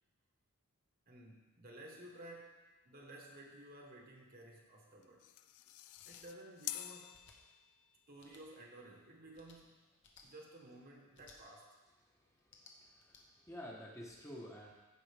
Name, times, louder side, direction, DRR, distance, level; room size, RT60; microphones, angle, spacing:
voice 1, 1.1-5.3 6.0-7.3 8.1-11.8, right 1 dB, 40° right, 0 dB, 1.3 m, -55 dB
sound 1, 5.0-8.0, left 14 dB, 80° left, 0.4 m, -48 dB
sound 2, 5.9-6.2 7.1-7.4 8.2-8.4 9.3-9.6 10.0-10.3 11.1-11.4 12.4-13.2, left 5 dB, 55° left, 1.1 m, -62 dB
voice 2, 12.1-14.7, equal, 15° left, -3 dB, 1.1 m, -51 dB
15.0 x 5.4 x 3.5 m, 1.2 s
head